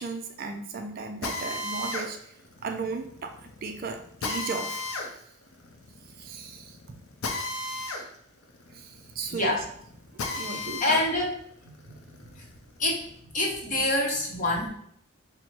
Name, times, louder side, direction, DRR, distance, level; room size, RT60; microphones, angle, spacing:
voice 1, 0.0-2.3 2.6-4.9 6.2-6.8 8.7-9.6 10.4-11.0, right 4 dB, 40° right, 5 dB, 0.3 m, -36 dB
Drill, 1.2-11.1 11.5-13.1, left 2 dB, 80° left, 0.6 m, -36 dB
voice 2, 9.3-9.6 10.3-11.4 11.6-11.7 12.8-13.0 13.3-14.7, left 2 dB, 35° left, -1 dB, 0.8 m, -26 dB
4.2 x 2.0 x 4.5 m, 0.66 s
head